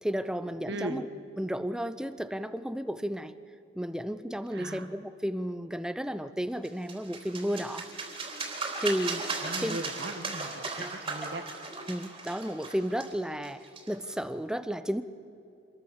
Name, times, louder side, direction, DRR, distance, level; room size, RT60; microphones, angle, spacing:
voice 1, 0.0-1.1 1.4-3.4 3.7-7.9 8.8-9.2 9.6-9.8 10.8-10.9 11.9-15.0, equal, 5° right, 12 dB, 0.7 m, -33 dB
voice 2, 0.7-1.0 4.5-4.8 9.4-11.4, right 2 dB, 55° right, 8 dB, 1.5 m, -38 dB
sound 1, 6.6-14.1, right 3 dB, 25° right, 3.7 m, -37 dB
26.5 x 21.5 x 7.3 m, 2.7 s
head